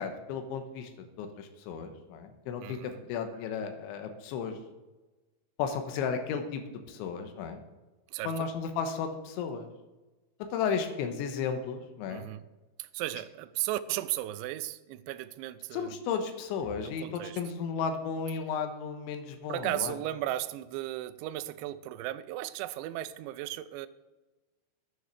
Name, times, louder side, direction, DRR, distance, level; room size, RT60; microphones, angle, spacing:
voice 1, 0.0-4.6 5.6-6.6 6.9-7.6 8.2-9.7 10.5-12.3 15.7-19.9, left 6 dB, 80° left, 6 dB, 3.4 m, -34 dB
voice 2, 2.6-3.0 8.1-8.5 12.1-12.4 12.8-15.9 16.8-17.4 19.5-23.9, right 14 dB, 80° right, 12 dB, 2.7 m, -35 dB
10.0 x 9.7 x 6.5 m, 1.1 s
omnidirectional pair, 5.6 m